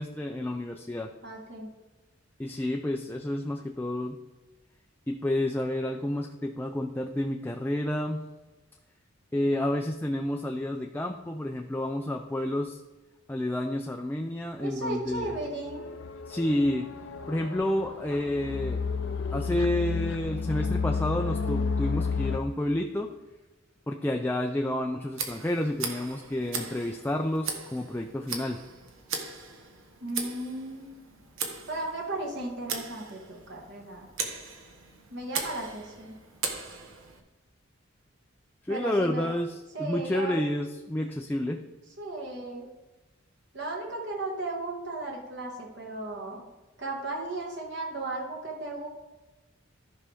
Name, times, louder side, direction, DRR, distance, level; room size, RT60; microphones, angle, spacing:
voice 1, 0.0-1.1 2.4-4.2 5.1-8.2 9.3-12.8 13.3-15.4 16.3-16.9 17.3-18.8 19.3-23.1 23.9-28.6 38.6-41.6, left 1 dB, 10° left, 2 dB, 0.4 m, -30 dB
voice 2, 1.2-1.7 14.6-15.8 30.0-30.9 31.7-34.1 35.1-36.2 38.7-39.3 39.7-40.4 42.0-42.7 43.5-46.5 46.8-48.9, right 2 dB, 60° right, -1 dB, 1.7 m, -35 dB
sound 1, 15.1-22.4, left 4 dB, 65° left, 0.6 m, -31 dB
Tick, 25.1-37.2, right 5 dB, 75° right, 1.2 m, -38 dB
14.0 x 5.5 x 3.5 m, 1.1 s
head